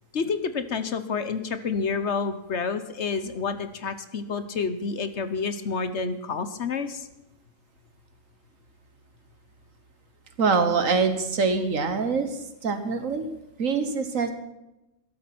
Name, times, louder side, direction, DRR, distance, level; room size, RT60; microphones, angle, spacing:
voice 1, 0.1-7.1, left 5 dB, 55° left, 12 dB, 1.2 m, -29 dB
voice 2, 10.4-12.3 12.6-13.3 13.6-14.3, right 4 dB, 70° right, 9 dB, 1.8 m, -24 dB
13.0 x 12.5 x 6.0 m, 0.94 s
omnidirectional pair, 1.4 m